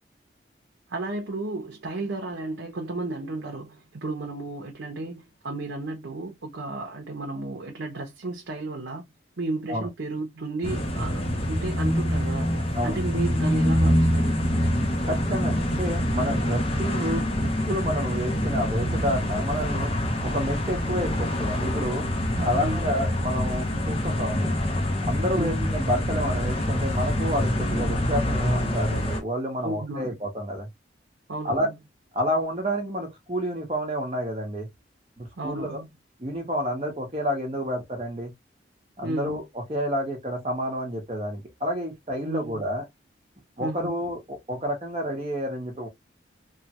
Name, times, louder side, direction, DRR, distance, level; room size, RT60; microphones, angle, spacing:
voice 1, 0.9-9.0 9.4-14.5 22.3-22.9 25.3-25.7 29.6-30.1 31.3-31.7 35.4-35.9 39.0-39.4 42.2-42.6 43.6-43.9, right 2 dB, 80° right, 0.7 m, -33 dB
sound 1, 10.6-29.2, equal, 30° left, 0.6 m, -25 dB
voice 2, 15.1-19.9 20.2-22.1 22.4-24.5 25.1-30.7 31.4-31.7 32.1-34.7 35.2-35.8 36.2-38.3 39.0-39.4 39.7-42.8 43.6-45.9, equal, 30° right, 1.0 m, -29 dB
3.2 x 2.2 x 2.8 m
head